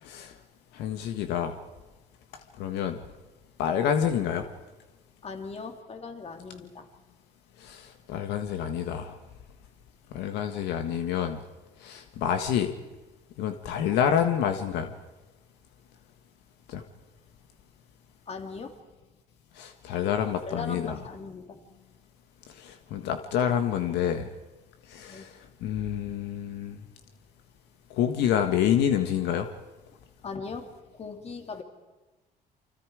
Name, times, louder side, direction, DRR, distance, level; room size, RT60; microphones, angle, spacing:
voice 1, 0.0-0.3 0.7-1.6 2.6-3.0 3.6-4.4 7.6-9.2 10.1-11.4 11.8-12.7 13.4-14.9 16.7-16.8 19.6-21.0 22.6-24.3 24.9-25.3 25.6-26.8 27.9-29.5, left 9 dB, 85° left, 7 dB, 1.6 m, -28 dB
voice 2, 5.2-6.9 18.3-18.7 20.5-21.6 25.1-25.3 30.2-31.6, left 4 dB, 40° left, 5 dB, 3.1 m, -39 dB
29.5 x 25.0 x 4.9 m, 1.1 s
cardioid pair, 110°, 17 cm